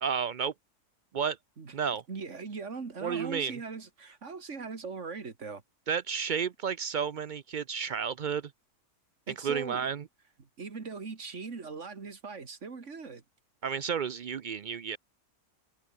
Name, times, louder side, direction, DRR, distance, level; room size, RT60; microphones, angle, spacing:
voice 1, 0.0-0.5 1.1-1.4 1.7-2.0 3.0-3.6 5.9-8.5 9.3-10.1 13.6-15.0, right 7 dB, 80° right, 0.4 m, -32 dB
voice 2, 2.1-5.6 9.3-9.9 10.4-13.2, right 4 dB, 45° right, 2.4 m, -40 dB
omnidirectional pair, 1.7 m